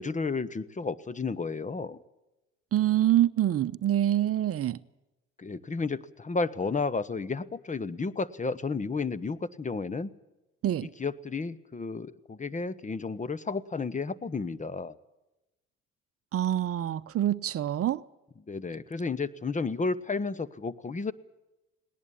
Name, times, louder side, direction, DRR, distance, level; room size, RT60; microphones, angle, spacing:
voice 1, 0.0-2.0 5.4-10.1 10.8-14.9 18.5-21.1, left 4 dB, 25° left, 1.2 m, -32 dB
voice 2, 2.7-4.8 10.6-10.9 16.3-18.0, right 12 dB, 50° right, 0.8 m, -26 dB
19.5 x 19.0 x 8.6 m
supercardioid pair, 65°, 30 cm